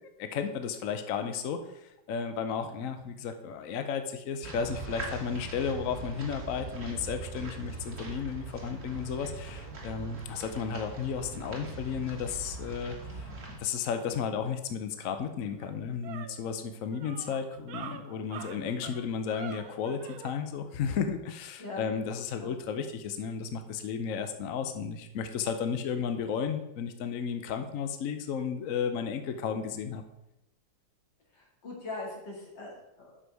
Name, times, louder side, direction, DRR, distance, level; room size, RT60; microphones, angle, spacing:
voice 1, 0.0-13.3 13.6-30.0, left 6 dB, 60° left, 8 dB, 0.9 m, -33 dB
sound 1, 4.4-13.6, right 3 dB, 45° right, 1.8 m, -41 dB
sound 2, 14.9-15.0 15.4-20.4, right 8 dB, 65° right, 1.1 m, -45 dB
voice 2, 31.3-33.2, left 2 dB, 80° left, -2 dB, 3.0 m, -41 dB
8.1 x 6.2 x 4.7 m, 0.87 s
omnidirectional pair, 1.9 m